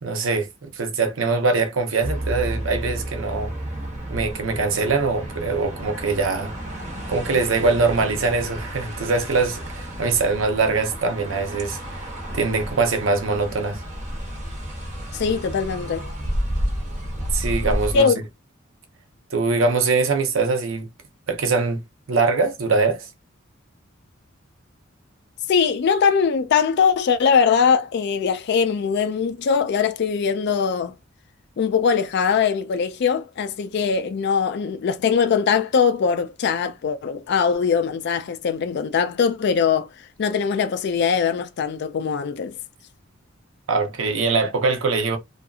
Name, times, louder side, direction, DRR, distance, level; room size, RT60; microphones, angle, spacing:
voice 1, 0.0-3.5 4.1-6.5 7.1-13.8 17.3-18.1 19.3-20.9 21.3-21.8 22.1-23.1 43.7-45.2, right 4 dB, 70° right, 0.7 m, -22 dB
sound 1, 2.0-18.0, equal, 35° right, 0.8 m, -31 dB
voice 2, 15.1-16.1 17.9-18.2 25.5-30.9 31.6-42.6, left 6 dB, 55° left, 0.4 m, -21 dB
2.7 x 2.5 x 2.4 m
head